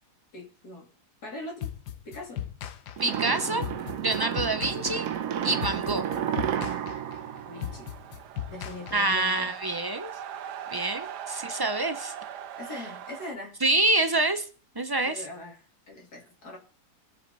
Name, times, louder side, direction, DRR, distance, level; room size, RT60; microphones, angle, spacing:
voice 1, 0.3-0.9 1.2-1.7 2.0-2.5 7.4-7.9 8.5-9.5 12.6-13.6 15.0-16.6, left 2 dB, 70° left, 0 dB, 3.1 m, -41 dB
sound 1, 1.6-9.4, left 10 dB, 85° left, 1.4 m, -38 dB
voice 2, 3.0-3.6 4.0-5.1 5.4-6.1 8.9-10.1 10.7-12.1 13.6-14.4 14.8-15.2, right 2 dB, 40° right, 9 dB, 0.3 m, -26 dB
sound 2, 3.0-8.3, right 9 dB, 65° right, 1.1 m, -32 dB
sound 3, 6.2-13.3, right 9 dB, 85° right, 1.4 m, -42 dB
22.0 x 7.8 x 4.1 m, 0.40 s
omnidirectional pair, 1.7 m